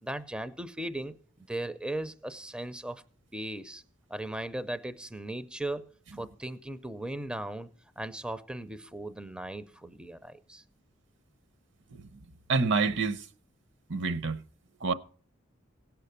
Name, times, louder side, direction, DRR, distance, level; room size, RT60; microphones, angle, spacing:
voice 1, 0.0-1.1 1.5-3.0 3.3-3.8 4.1-5.9 6.2-7.7 8.0-10.6, right 1 dB, 5° right, 0.4 m, -37 dB
voice 2, 12.5-13.2 13.9-14.4 14.8-14.9, right 4 dB, 60° right, 0.7 m, -27 dB
17.0 x 5.7 x 6.7 m
head